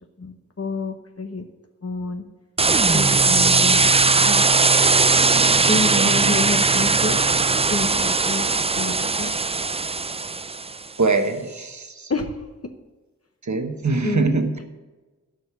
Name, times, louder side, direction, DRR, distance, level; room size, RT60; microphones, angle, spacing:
voice 1, 0.2-1.4 1.8-2.3 2.9-4.4 5.7-7.3 7.7-9.3 12.1-12.7 13.8-14.2, left 3 dB, 50° left, 6 dB, 0.9 m, -29 dB
sound 1, 2.6-10.8, right 4 dB, 20° right, 0.3 m, -19 dB
voice 2, 5.6-6.3 11.0-12.1 13.4-14.5, right 3 dB, 65° right, 7 dB, 1.1 m, -23 dB
12.0 x 5.3 x 6.9 m, 1.2 s
wide cardioid pair, 55°, 31 cm